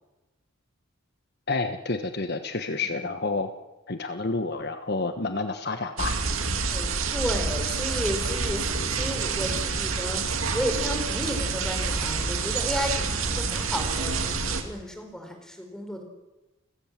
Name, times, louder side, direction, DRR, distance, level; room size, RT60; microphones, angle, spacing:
voice 1, 1.5-3.5 3.9-6.2, left 3 dB, 50° left, 7 dB, 1.2 m, -29 dB
sound 1, 6.0-14.6, right 4 dB, 80° right, 2.5 m, -28 dB
voice 2, 6.7-10.2 10.5-16.0, equal, 5° left, 4 dB, 4.2 m, -33 dB
sound 2, 8.2-14.7, equal, 30° left, 4.1 m, -39 dB
30.0 x 16.0 x 7.5 m, 1.1 s
head